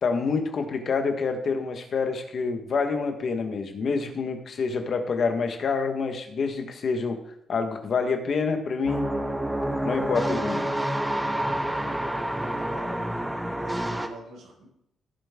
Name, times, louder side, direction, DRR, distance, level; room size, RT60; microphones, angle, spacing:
voice 1, 0.0-7.2 7.5-9.1 9.8-10.7, left 4 dB, 40° left, 5 dB, 1.4 m, -27 dB
sound 1, 8.9-14.1, right 1 dB, 5° right, 0.8 m, -28 dB
voice 2, 11.4-13.2 13.6-14.6, right 2 dB, 65° right, -1 dB, 4.9 m, -45 dB
16.5 x 7.3 x 3.7 m, 0.77 s
cardioid pair, 175°, 0 cm